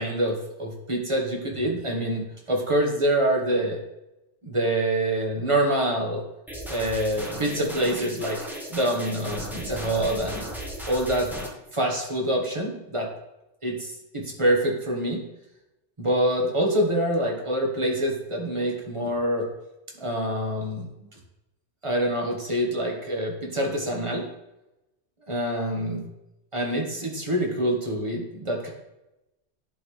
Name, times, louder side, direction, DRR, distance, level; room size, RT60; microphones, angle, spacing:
voice 1, 0.0-3.8 4.4-6.2 6.7-8.4 8.7-10.5 10.9-11.3 11.7-13.1 13.6-15.2 16.0-19.5 20.0-20.9 21.8-24.2 25.3-26.0 26.5-28.7, right 1 dB, 25° right, 0 dB, 1.4 m, -26 dB
sound 1, 6.5-11.5, right 1 dB, ahead, 1.2 m, -36 dB
11.0 x 4.0 x 3.3 m, 0.93 s
omnidirectional pair, 1.2 m